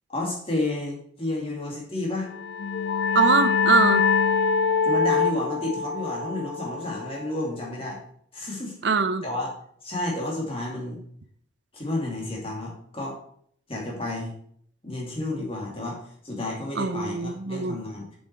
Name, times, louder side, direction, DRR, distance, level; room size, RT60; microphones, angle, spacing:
voice 1, 0.1-2.3 4.8-8.0 8.3-8.8 9.2-9.5 9.8-11.0 11.7-13.2 13.7-14.3 14.8-18.2, left 2 dB, 30° left, -2 dB, 2.4 m, -31 dB
sound 1, 2.3-7.6, left 5 dB, 65° left, 0.4 m, -24 dB
voice 2, 3.1-4.0 8.8-9.2 16.8-17.8, right 5 dB, 65° right, 11 dB, 0.6 m, -22 dB
7.2 x 6.4 x 4.7 m, 0.64 s
head